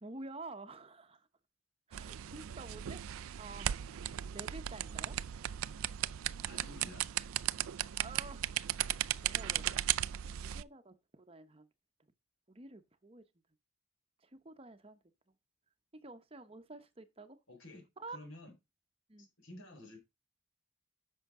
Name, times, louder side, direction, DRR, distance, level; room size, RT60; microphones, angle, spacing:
voice 1, 0.0-1.3 1.9-4.0 4.3-5.2 8.0-8.5 9.2-9.8 10.3-11.7 12.5-13.2 14.2-15.0 16.0-17.4 18.0-18.3 19.1-19.3, right 3 dB, 25° right, 0.8 m, -50 dB
sound 1, 1.9-10.6, right 12 dB, 90° right, 0.4 m, -36 dB
voice 2, 6.5-7.1 17.5-18.5 19.2-20.0, left 1 dB, 75° left, 4.4 m, -52 dB
10.5 x 6.3 x 3.6 m
head